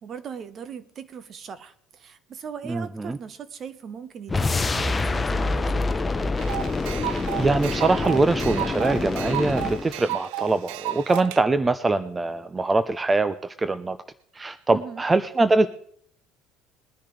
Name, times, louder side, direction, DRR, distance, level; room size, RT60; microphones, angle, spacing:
voice 1, 0.0-5.9 14.7-15.0, right 7 dB, 45° right, 12 dB, 1.2 m, -39 dB
voice 2, 2.7-3.2 7.0-14.0 14.3-15.7, right 3 dB, 20° right, 12 dB, 0.7 m, -23 dB
sound 1, 4.3-9.9, left 3 dB, 20° left, 0.9 m, -26 dB
sound 2, 6.4-11.4, right 15 dB, 75° right, 0.4 m, -33 dB
21.5 x 10.0 x 3.3 m, 0.63 s
hypercardioid pair, 75°, 0 cm